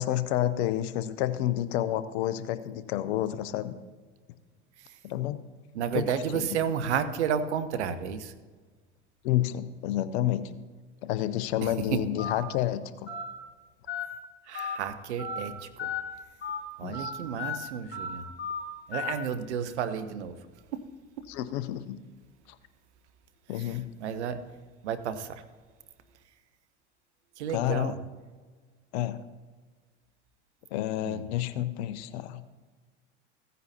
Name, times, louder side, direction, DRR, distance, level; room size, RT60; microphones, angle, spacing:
voice 1, 0.0-3.7 5.0-5.4 5.9-6.6 9.2-10.5 11.0-13.1 16.8-17.1 21.3-22.0 23.5-23.9 27.5-27.9 28.9-29.2 30.7-32.4, left 13 dB, 70° left, 14 dB, 0.8 m, -29 dB
voice 2, 5.7-8.3 11.6-12.1 14.5-15.9 16.8-18.3 18.9-20.4 20.7-20.8 23.6-24.5 24.8-25.4 27.4-28.0 31.0-31.2, right 7 dB, 85° right, 11 dB, 0.9 m, -32 dB
Telephone, 12.2-12.3 13.1-13.2 13.9-14.0 14.5-14.8 15.2-15.4 15.8-16.0 16.4-16.6 16.9-17.1 17.4-17.6 17.9-18.1 18.4-18.6 18.9-19.1, left 6 dB, 35° left, 2.5 m, -33 dB
15.5 x 9.4 x 2.8 m, 1.4 s
hypercardioid pair, 80°, 34 cm